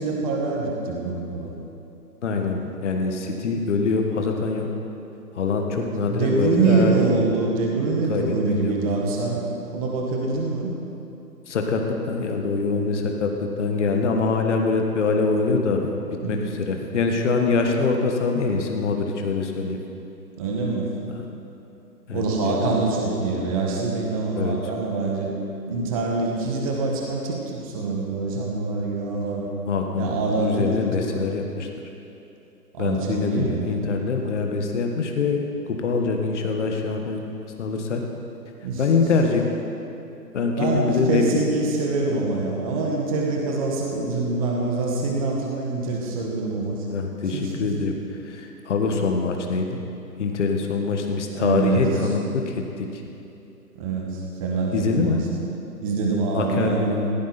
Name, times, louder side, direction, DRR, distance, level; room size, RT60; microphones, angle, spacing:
voice 1, 0.0-1.5 5.6-9.4 9.7-10.7 16.2-16.5 20.4-20.9 22.1-25.4 25.7-29.5 30.0-31.3 32.7-33.7 38.6-39.0 40.6-46.9 47.3-47.9 51.3-51.9 53.7-55.3 55.8-56.9, right 3 dB, 20° right, -1 dB, 1.6 m, -25 dB
voice 2, 2.2-4.7 5.3-7.1 8.1-9.1 11.5-15.8 16.3-19.8 21.1-21.2 22.1-22.8 24.4-24.5 29.7-31.7 32.8-35.4 35.7-37.2 37.6-38.0 38.8-39.5 40.3-41.2 46.9-47.9 48.3-49.8 50.2-52.9 54.7-55.2 56.3-57.1, left 4 dB, 45° left, 3 dB, 1.5 m, -24 dB
16.0 x 14.5 x 4.3 m, 2.8 s
hypercardioid pair, 150°, 50 cm